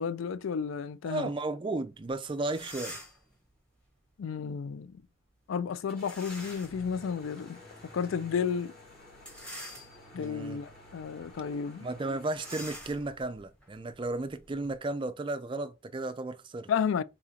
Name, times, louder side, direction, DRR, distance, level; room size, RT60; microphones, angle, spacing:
voice 1, 0.0-1.3 4.2-5.0 5.5-7.6 7.9-8.7 10.1-11.9 16.7-17.0, left 6 dB, 70° left, 0.3 m, -32 dB
voice 2, 1.1-3.0 10.1-10.6 11.8-16.7, right 2 dB, 25° right, 0.4 m, -34 dB
sound 1, 2.1-2.2 2.4-3.3 6.0-6.8 7.4-7.5 9.1-10.3 10.8-11.0 11.3-11.4 12.3-14.8, equal, 5° left, 1.5 m, -46 dB
Car / Engine starting, 5.9-12.7, left 1 dB, 50° left, 2.2 m, -51 dB
4.0 x 3.7 x 2.8 m
head